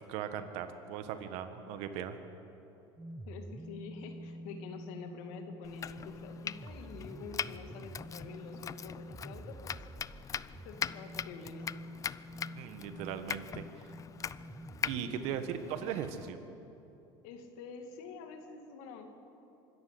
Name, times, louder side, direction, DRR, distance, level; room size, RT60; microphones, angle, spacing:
voice 1, 0.1-2.2 12.5-13.6 14.8-16.4, right 9 dB, 70° right, 9 dB, 1.6 m, -38 dB
sound 1, 3.0-15.8, right 1 dB, 10° right, 0.6 m, -48 dB
voice 2, 3.3-9.8 10.6-12.0 14.9-15.4 17.2-19.1, left 5 dB, 75° left, 5 dB, 2.4 m, -47 dB
Domestic sounds home sounds, 5.6-16.3, left 8 dB, 30° left, 0.4 m, -42 dB
24.5 x 13.5 x 7.8 m, 3.0 s
supercardioid pair, 105°, 11 cm